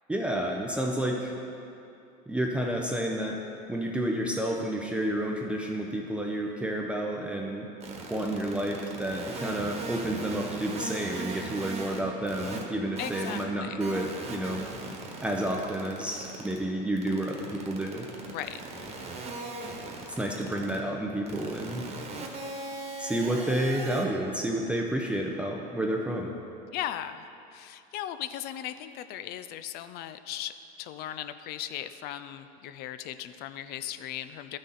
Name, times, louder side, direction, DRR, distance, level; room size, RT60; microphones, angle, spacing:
voice 1, 0.1-1.3 2.3-3.4 3.7-7.7 8.1-14.7 15.2-18.1 20.2-21.9 23.0-26.3, right 1 dB, 5° right, 0 dB, 0.6 m, -30 dB
sound 1, 7.8-12.0 12.3-12.6 13.0-13.4 13.8-16.6 17.0-20.8 21.3-24.1, right 3 dB, 30° right, 1.4 m, -38 dB
voice 2, 13.0-13.8 18.3-18.6 26.7-27.3 27.5-34.6, left 11 dB, 50° left, 12 dB, 0.5 m, -37 dB
12.5 x 6.5 x 4.0 m, 2.7 s
supercardioid pair, 125°, 21 cm